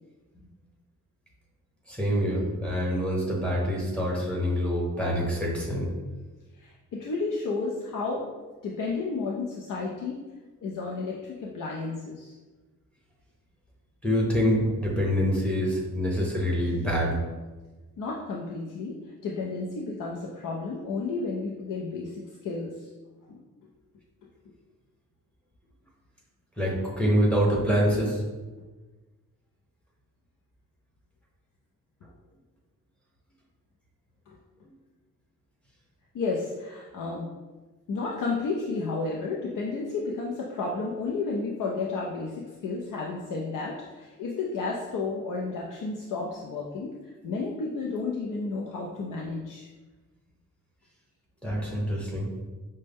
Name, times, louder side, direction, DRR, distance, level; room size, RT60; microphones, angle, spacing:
voice 1, 1.9-5.9 14.0-17.2 26.6-28.2 51.4-52.3, equal, 5° left, -4 dB, 0.8 m, -26 dB
voice 2, 6.6-8.3 8.6-10.2 10.6-12.3 18.0-22.9 23.3-23.4 34.3-34.4 36.1-37.3 37.9-46.9 47.2-49.7, left 3 dB, 80° left, -3 dB, 0.6 m, -32 dB
5.2 x 2.2 x 3.4 m, 1.2 s
wide cardioid pair, 160°, 32 cm